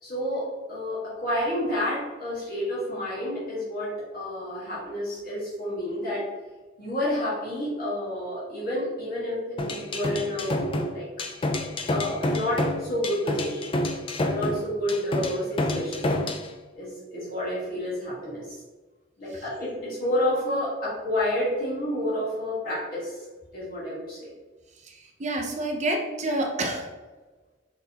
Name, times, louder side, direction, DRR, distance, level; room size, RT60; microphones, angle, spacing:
voice 1, 0.0-6.3 6.8-11.1 11.9-13.7 14.2-16.1 16.7-18.6 19.2-23.2 23.5-24.3, left 1 dB, 50° left, -8 dB, 1.4 m, -30 dB
sound 1, 9.6-16.5, left 1 dB, 25° left, 0.4 m, -28 dB
voice 2, 24.8-26.9, right 1 dB, 35° right, 2 dB, 0.6 m, -29 dB
4.2 x 3.9 x 2.8 m, 1.3 s
head